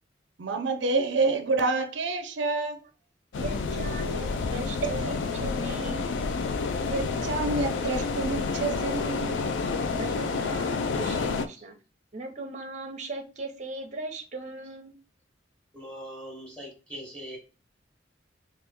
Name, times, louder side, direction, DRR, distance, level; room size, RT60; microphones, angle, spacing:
voice 1, 0.4-2.8 4.8-5.1 6.9-9.9 10.2-10.4, right 3 dB, 70° right, 0.5 m, -28 dB
sound 1, 3.3-11.5, left 4 dB, 75° left, 0.4 m, -29 dB
voice 2, 3.4-6.2 9.9-11.8 12.1-15.0, right 2 dB, 40° right, 0.8 m, -39 dB
voice 3, 15.7-17.4, equal, 5° left, 1.3 m, -41 dB
3.3 x 3.0 x 3.4 m
head